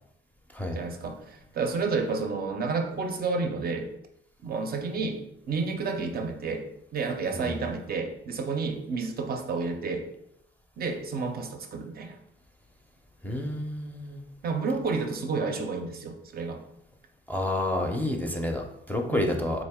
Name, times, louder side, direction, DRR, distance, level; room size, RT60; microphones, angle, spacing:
voice 1, 0.8-3.9 4.4-5.2 5.5-6.7 6.9-10.0 10.8-12.2 14.4-16.6 19.1-19.3, right 4 dB, 50° right, 4 dB, 0.6 m, -30 dB
voice 2, 13.2-14.2 17.3-19.6, left 1 dB, 10° left, 2 dB, 0.6 m, -29 dB
3.7 x 2.6 x 3.5 m, 0.81 s
cardioid pair, 90°, 20 cm